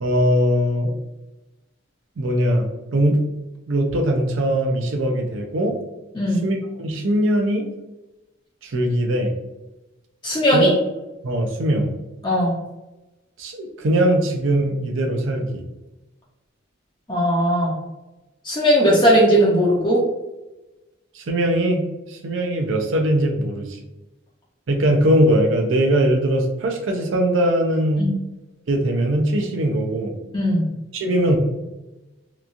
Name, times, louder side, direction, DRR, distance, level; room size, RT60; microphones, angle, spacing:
voice 1, 0.0-0.9 2.2-3.2 3.7-5.8 6.4-7.7 8.6-9.3 10.5-10.7 11.2-11.9 13.4-15.6 21.1-21.8 22.1-23.8 24.7-28.1 28.7-30.1 30.9-31.4, right 1 dB, 75° right, 3 dB, 0.5 m, -20 dB
voice 2, 6.1-6.4 10.2-10.7 12.2-12.6 17.1-17.8 18.4-20.0 28.0-28.1 30.3-30.6, equal, 20° left, -5 dB, 0.5 m, -18 dB
2.9 x 2.3 x 2.5 m, 1.0 s
head